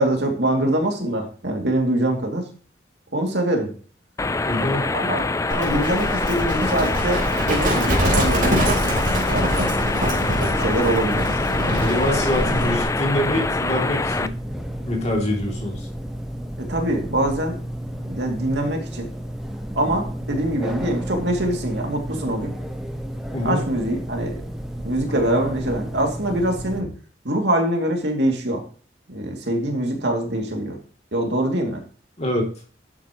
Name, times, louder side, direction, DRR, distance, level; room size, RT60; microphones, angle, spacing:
voice 1, 0.0-2.4 3.1-3.7 4.6-5.3 5.5-8.9 9.3-9.7 10.5-11.2 16.6-17.6 18.0-19.1 19.7-22.6 23.4-24.3 24.8-26.9 27.2-28.6 29.1-30.8 31.1-31.8, right 1 dB, 65° right, 2 dB, 2.5 m, -24 dB
sound 1, 4.2-14.3, left 3 dB, 15° left, 0.4 m, -25 dB
voice 2, 4.4-4.9 11.7-14.3 14.9-15.9 23.3-23.7 32.2-32.5, left 1 dB, 35° left, 1 dB, 2.7 m, -25 dB
Livestock farm animals working animals, 5.5-12.9, equal, 45° right, 3.5 m, -24 dB
sound 2, 9.4-26.8, equal, ahead, 1.1 m, -32 dB
11.5 x 8.3 x 3.0 m, 0.40 s
head